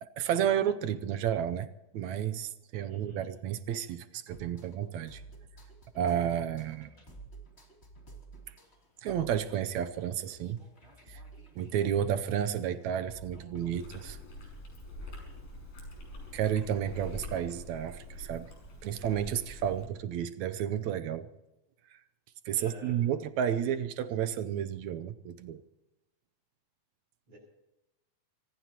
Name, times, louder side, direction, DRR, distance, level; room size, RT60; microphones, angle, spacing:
voice 1, 0.0-1.7 1.9-5.2 5.9-6.9 8.5-8.6 9.0-10.6 11.1-11.2 11.5-14.2 16.3-18.5 18.8-21.3 21.9-22.0 22.4-25.6, right 9 dB, 75° right, 10 dB, 1.8 m, -31 dB
voice 2, 2.9-3.3 22.5-23.0 27.3-27.4, right 1 dB, 45° right, -7 dB, 8.1 m, -50 dB
sound 1, 4.3-13.8, right 2 dB, 20° left, 2.9 m, -53 dB
Chewing mastication, 13.7-19.9, equal, 80° left, 7.8 m, -45 dB
25.0 x 19.0 x 2.9 m, 0.98 s
omnidirectional pair, 3.8 m